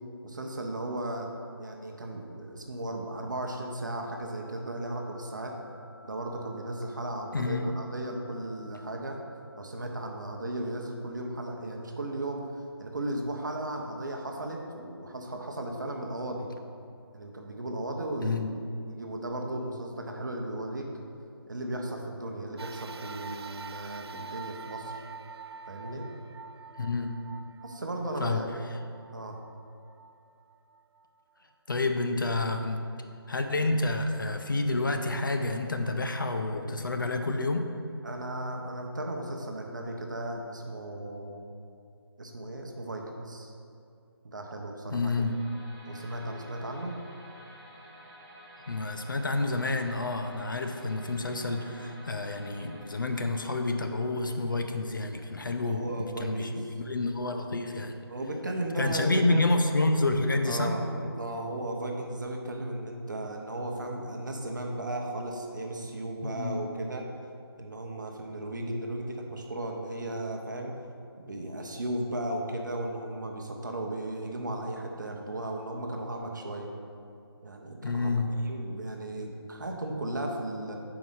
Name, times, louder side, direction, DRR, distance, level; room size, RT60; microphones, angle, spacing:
voice 1, 0.2-1.3 1.6-5.5 6.0-9.2 9.6-16.5 17.1-18.4 18.9-20.9 21.5-25.0 25.7-26.0 27.6-28.6 29.1-29.4 38.0-41.4 42.2-43.5 44.2-45.2 45.9-46.9 55.4-56.8 58.1-59.5 60.4-67.0 67.6-70.7 71.2-76.7 77.4-80.7, right 1 dB, 50° right, 2 dB, 0.7 m, -36 dB
sound 1, 4.2-9.2, left 3 dB, 85° left, 1.1 m, -54 dB
voice 2, 7.3-7.7 18.2-18.5 26.8-27.1 28.2-28.4 31.7-32.8 33.3-37.7 44.9-45.3 48.7-58.0 58.8-60.7 66.2-66.6 77.8-78.3, left 2 dB, 55° left, 5 dB, 0.5 m, -29 dB
sound 2, 22.6-31.2 31.8-31.9 33.0-33.1, right 4 dB, 75° right, 0.4 m, -45 dB
sound 3, 44.9-55.9, equal, 5° right, 0.7 m, -52 dB
5.2 x 4.8 x 5.4 m, 2.4 s
figure-of-eight pair, 180°, 13 cm